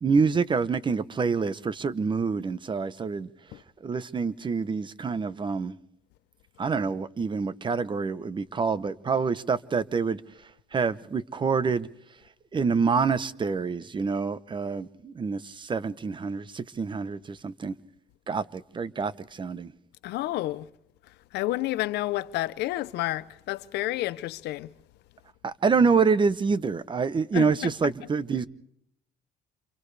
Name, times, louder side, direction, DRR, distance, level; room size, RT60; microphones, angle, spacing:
voice 1, 0.0-3.3 3.8-5.7 6.6-10.2 10.7-11.9 12.5-17.7 18.3-19.7 25.4-28.5, right 5 dB, 30° right, 0.9 m, -26 dB
voice 2, 20.0-20.7 21.3-24.7 27.3-27.9, left 16 dB, 80° left, 0.8 m, -30 dB
28.5 x 28.5 x 3.4 m
cardioid pair, 110°, 17 cm